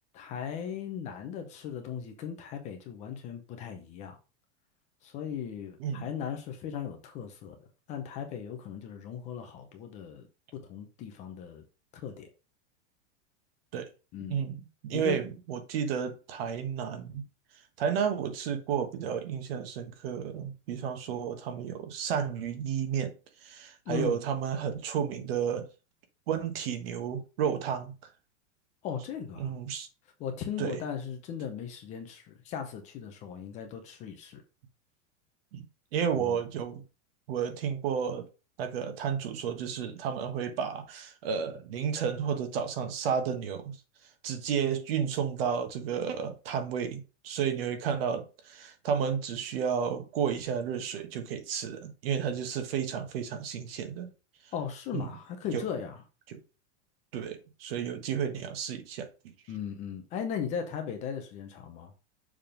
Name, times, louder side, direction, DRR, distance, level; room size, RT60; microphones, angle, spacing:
voice 1, 0.1-4.2 5.0-7.6 7.9-10.3 10.5-11.6 11.9-12.3 14.1-14.4 14.9-15.2 23.9-24.2 28.8-29.5 30.2-34.4 36.2-36.4 54.5-56.0 59.5-61.9, left 8 dB, 20° left, 0.6 m, -37 dB
voice 2, 14.8-17.2 17.8-23.1 23.4-25.7 26.3-27.9 29.4-29.9 30.6-30.8 35.5-35.6 35.9-36.8 37.3-38.3 38.6-43.8 44.2-54.1 54.9-55.1 55.5-55.7 56.3-56.4 57.1-59.1, right 7 dB, 55° right, 1.4 m, -32 dB
6.8 x 3.7 x 5.1 m
supercardioid pair, 180°, 35 cm